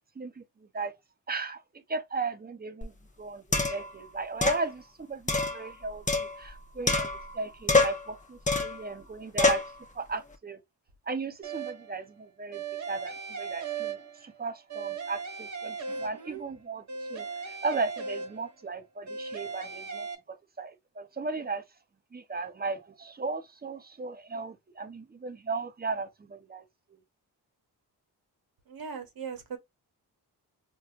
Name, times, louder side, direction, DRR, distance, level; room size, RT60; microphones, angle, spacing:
voice 1, 1.3-1.6 1.9-3.4 3.7-10.6 11.1-21.6 22.1-26.6 26.9-27.0, right 4 dB, 25° right, 0.7 m, -36 dB
sound 1, 2.8-2.9 3.5-3.9 4.4-4.6 5.3-6.6 6.9-7.4 7.7-8.1 8.5-8.8 9.4-9.7, left 3 dB, 20° left, 0.8 m, -26 dB
sound 2, 11.4-12.0 12.5-14.4 14.7-16.5 16.9-18.7 19.1-20.1, right 5 dB, 45° right, 1.1 m, -37 dB
voice 2, 15.9-16.4 28.7-29.6, right 6 dB, 60° right, 1.0 m, -40 dB
4.3 x 2.3 x 2.4 m
cardioid pair, 65°, 40 cm